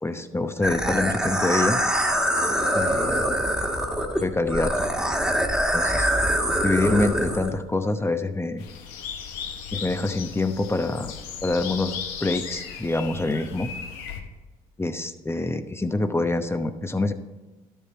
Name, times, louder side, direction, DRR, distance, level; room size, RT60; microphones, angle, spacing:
voice 1, 0.0-1.8 2.7-3.3 4.2-4.7 5.7-6.1 6.6-8.6 9.7-11.1 11.4-13.7 14.8-17.1, left 2 dB, 15° left, 9 dB, 0.9 m, -26 dB
sound 1, 0.6-7.5, equal, 5° right, 1.7 m, -24 dB
sound 2, 8.6-14.2, left 7 dB, 90° left, 0.9 m, -36 dB
12.0 x 7.0 x 4.3 m, 1.2 s
supercardioid pair, 60°, 17 cm